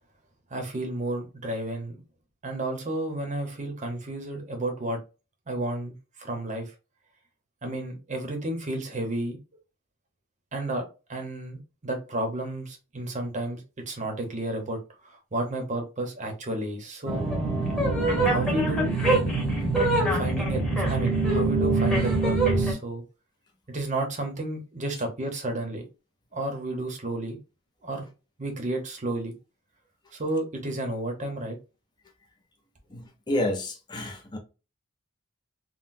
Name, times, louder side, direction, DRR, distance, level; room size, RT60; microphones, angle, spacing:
voice 1, 0.5-2.0 2.4-5.0 5.5-6.7 7.6-9.4 10.5-10.8 11.1-17.3 18.2-18.9 20.1-23.0 23.7-25.8 26.3-27.4 27.8-28.1 28.4-29.3 30.1-31.6, right 1 dB, 35° right, 0.8 m, -32 dB
sound 1, 17.1-22.7, right 2 dB, 5° left, 1.0 m, -24 dB
voice 2, 32.9-34.4, left 1 dB, 20° left, 0.5 m, -30 dB
3.8 x 2.1 x 2.6 m
head